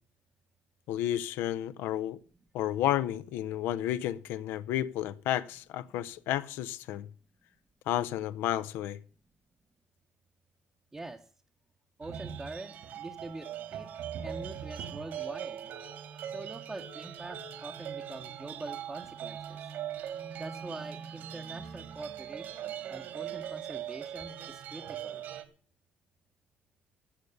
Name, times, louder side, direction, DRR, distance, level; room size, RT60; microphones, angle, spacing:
voice 1, 0.9-2.2 2.5-7.1 7.9-9.0, left 12 dB, 80° left, 0.6 m, -31 dB
voice 2, 10.9-11.3 12.0-13.9 14.2-15.7 16.3-19.7 20.3-25.2, right 2 dB, 15° right, 0.8 m, -44 dB
sound 1, 12.0-25.4, right 9 dB, 60° right, 1.5 m, -41 dB
15.0 x 6.5 x 6.7 m
cardioid pair, 150°, 4 cm